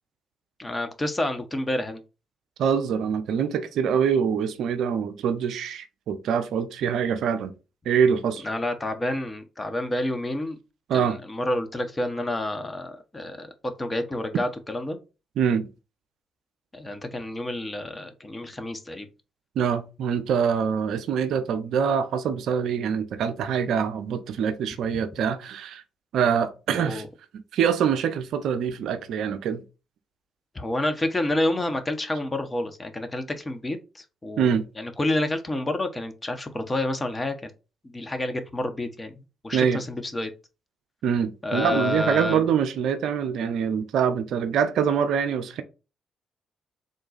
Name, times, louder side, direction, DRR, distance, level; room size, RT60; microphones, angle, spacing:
voice 1, 0.6-2.0 8.4-10.6 10.9-13.5 13.8-15.0 16.7-19.1 26.7-27.1 30.5-37.5 37.8-40.3 41.4-42.5, left 1 dB, 25° left, 0.8 m, -29 dB
voice 2, 2.6-7.5 7.9-8.5 10.9-11.2 15.4-15.7 19.6-25.8 26.1-27.0 27.5-29.6 34.4-34.6 39.5-39.8 41.0-45.6, right 7 dB, 65° right, 0.4 m, -24 dB
3.8 x 2.3 x 3.9 m
hypercardioid pair, 45°, 0 cm